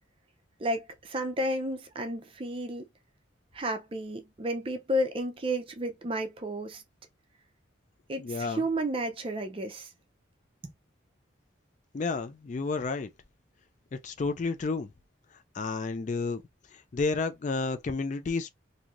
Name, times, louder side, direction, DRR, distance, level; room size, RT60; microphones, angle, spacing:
voice 1, 0.6-2.8 3.5-6.8 8.1-9.9, right 1 dB, 25° right, 0.5 m, -32 dB
voice 2, 8.2-8.6 11.9-13.1 14.0-14.9 15.5-16.4 16.7-18.5, left 4 dB, 40° left, 0.3 m, -31 dB
3.1 x 2.7 x 2.4 m
head